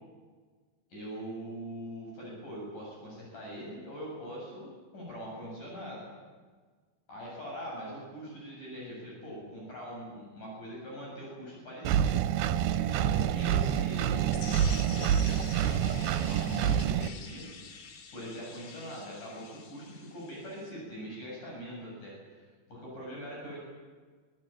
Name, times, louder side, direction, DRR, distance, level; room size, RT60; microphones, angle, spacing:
voice 1, 0.9-6.1 7.1-17.8 18.1-23.6, equal, 55° left, -3 dB, 9.0 m, -42 dB
Engine, 11.9-17.1, right 9 dB, 80° right, 2.6 m, -27 dB
sound 1, 14.3-20.7, left 6 dB, 90° left, 4.1 m, -47 dB
26.0 x 17.0 x 9.0 m, 1.5 s
omnidirectional pair, 4.4 m